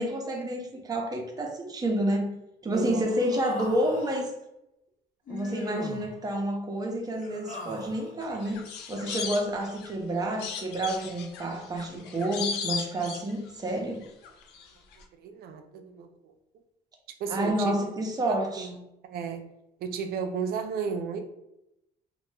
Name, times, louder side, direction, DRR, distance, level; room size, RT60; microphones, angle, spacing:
voice 1, 0.0-2.4 2.6-4.3 5.3-8.6 8.9-14.0 17.3-18.7, right 1 dB, 20° right, 1 dB, 0.6 m, -29 dB
voice 2, 2.7-3.0 15.2-16.3 17.2-17.8 18.3-18.8 19.0-19.5 19.8-21.2, right 6 dB, 65° right, 6 dB, 0.4 m, -33 dB
Human voice, 2.8-4.3 5.3-6.1 7.0-8.2, left 1 dB, 55° left, 0.7 m, -41 dB
sound 1, 8.2-10.0 10.4-13.7 14.0-14.7 14.9-15.0, left 6 dB, 85° left, 0.4 m, -36 dB
2.2 x 2.1 x 3.1 m, 0.86 s
cardioid pair, 110°, 17 cm